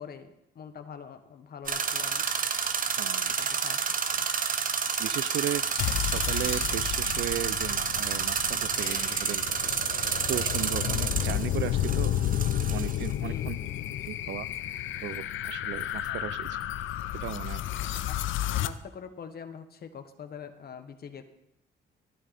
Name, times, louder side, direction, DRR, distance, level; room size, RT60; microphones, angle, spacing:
voice 1, 0.0-2.2 3.4-3.8 4.1-4.3 13.2-13.8 16.1-16.2 18.1-18.2 18.6-21.2, left 7 dB, 50° left, 8 dB, 1.4 m, -44 dB
sound 1, 1.7-13.1, right 6 dB, 45° right, 1.0 m, -30 dB
voice 2, 3.0-3.5 5.0-9.7 10.3-12.2 12.7-13.6 14.1-14.5 15.0-16.6 17.1-17.7, right 13 dB, 70° right, 18 dB, 0.5 m, -36 dB
ghost out of mirror, 5.8-18.7, left 12 dB, 80° left, 0.6 m, -32 dB
13.5 x 11.0 x 4.2 m, 0.81 s
cardioid pair, 90°, 20 cm